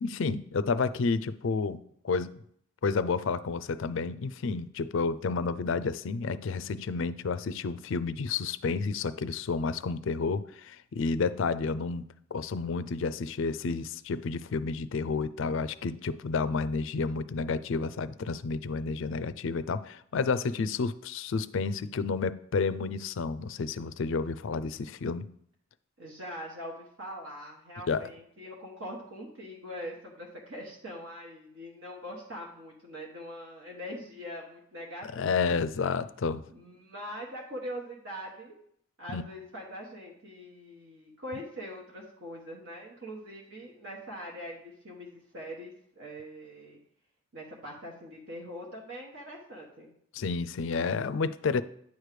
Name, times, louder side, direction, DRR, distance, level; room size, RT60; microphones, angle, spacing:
voice 1, 0.0-2.3 2.8-25.3 27.9-28.1 35.1-36.4 39.1-39.2 50.1-51.6, left 4 dB, 65° left, 14 dB, 0.4 m, -30 dB
voice 2, 26.0-35.5 36.5-38.6 39.0-46.8 47.3-49.9, equal, 65° right, -2 dB, 1.3 m, -42 dB
9.5 x 3.2 x 6.7 m, 0.67 s
head